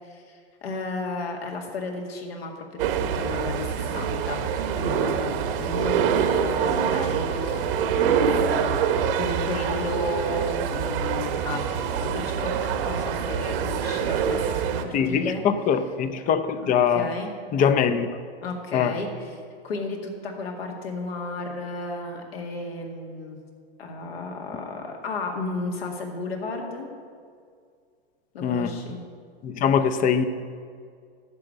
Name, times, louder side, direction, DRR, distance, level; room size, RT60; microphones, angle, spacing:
voice 1, 0.0-15.4 16.9-17.3 18.4-19.3 19.6-23.4 23.8-26.9 28.3-29.0, left 2 dB, 75° left, 2.2 m, -33 dB
sound 1, 2.8-14.8, right 7 dB, 60° right, 1.2 m, -25 dB
voice 2, 14.9-17.1 17.5-18.1 18.7-19.0 28.4-28.8 29.4-30.3, left 7 dB, 25° left, 0.6 m, -22 dB
10.5 x 6.8 x 7.7 m
hypercardioid pair, 110°, 31 cm